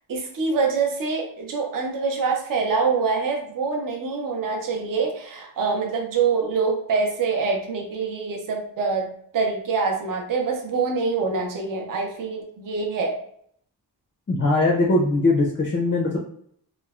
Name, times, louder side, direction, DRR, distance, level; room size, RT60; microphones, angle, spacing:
voice 1, 0.1-13.2, right 4 dB, 50° right, 2 dB, 0.5 m, -25 dB
voice 2, 14.3-16.2, left 2 dB, 30° left, -2 dB, 0.4 m, -20 dB
3.0 x 2.1 x 2.3 m, 0.65 s
wide cardioid pair, 175°, 43 cm